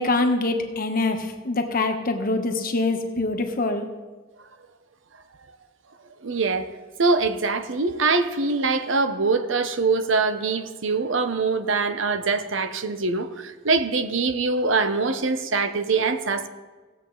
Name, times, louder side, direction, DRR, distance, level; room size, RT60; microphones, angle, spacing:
voice 1, 0.0-3.8, left 2 dB, 45° left, 1.1 m, -24 dB
voice 2, 6.2-16.5, right 4 dB, 70° right, 0.8 m, -23 dB
17.0 x 7.5 x 3.9 m
head